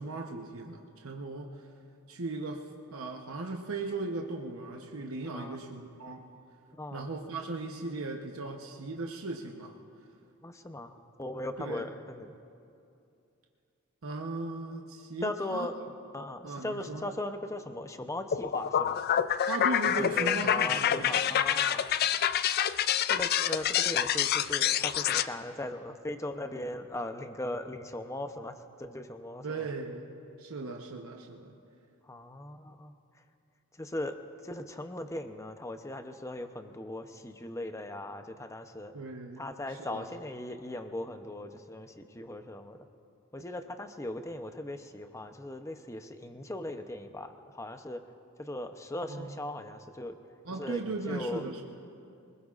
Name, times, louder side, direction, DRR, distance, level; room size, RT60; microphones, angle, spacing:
voice 1, 0.0-1.7 2.1-6.3 6.9-9.8 11.6-11.9 14.0-15.7 16.4-17.0 19.5-21.2 29.4-30.1 30.4-31.5 38.9-39.4 39.7-40.1 49.1-49.3 50.4-51.6, right 3 dB, 75° right, 1 dB, 0.9 m, -37 dB
voice 2, 5.3-5.6 6.8-7.1 10.4-12.3 15.2-15.8 16.1-19.1 20.0-21.8 23.1-29.7 32.1-32.9 33.8-34.1 34.4-38.9 39.4-42.9 43.3-48.0 48.4-50.2 50.6-51.4, left 1 dB, 15° left, 7 dB, 0.7 m, -38 dB
sound 1, 18.3-25.3, left 9 dB, 45° left, 0.3 m, -27 dB
25.5 x 20.5 x 2.5 m, 2.6 s
head